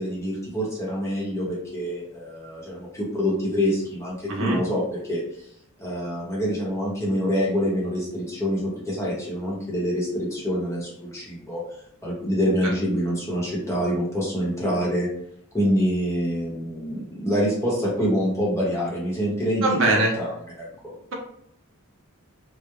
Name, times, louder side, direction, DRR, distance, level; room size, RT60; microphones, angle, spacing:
voice 1, 0.0-5.2 5.8-11.6 12.0-15.1 15.5-19.8 20.2-20.9, equal, 15° left, -5 dB, 0.7 m, -26 dB
voice 2, 4.3-4.6 19.6-20.1, right 2 dB, 60° right, -1 dB, 0.6 m, -21 dB
2.2 x 2.0 x 2.9 m, 0.72 s
head